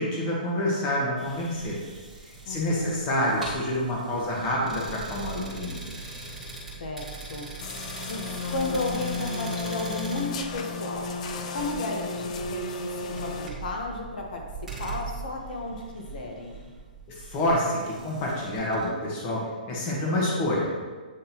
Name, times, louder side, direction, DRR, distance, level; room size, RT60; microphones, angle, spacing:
voice 1, 0.0-1.8 2.4-5.9 17.1-20.7, left 1 dB, 25° left, -3 dB, 1.3 m, -27 dB
sound 1, 1.2-18.9, right 3 dB, ahead, 1.7 m, -41 dB
voice 2, 2.5-3.0 6.8-7.5 8.1-11.1 11.5-14.4 14.8-16.6, left 2 dB, 60° left, 0 dB, 1.1 m, -33 dB
sound 2, 7.6-13.5, left 3 dB, 45° left, 0.5 m, -34 dB
8.6 x 3.8 x 2.9 m, 1.4 s
hypercardioid pair, 160°, 5 cm